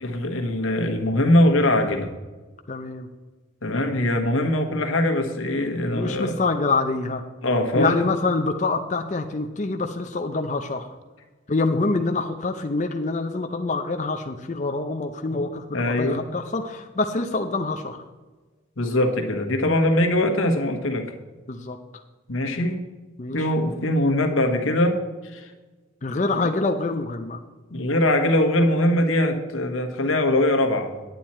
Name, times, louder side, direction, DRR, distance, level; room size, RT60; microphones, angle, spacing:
voice 1, 0.0-2.1 3.6-6.4 7.4-8.0 15.3-15.4 15.7-16.2 18.8-21.1 22.3-22.8 23.3-25.5 26.4-26.5 27.7-31.0, left 1 dB, 90° left, 5 dB, 1.3 m, -22 dB
voice 2, 2.7-3.1 5.9-7.2 7.8-10.9 11.5-18.0 21.5-21.8 23.2-23.5 26.0-27.4, left 3 dB, 35° left, 5 dB, 0.5 m, -26 dB
9.2 x 9.1 x 4.3 m, 1.3 s
head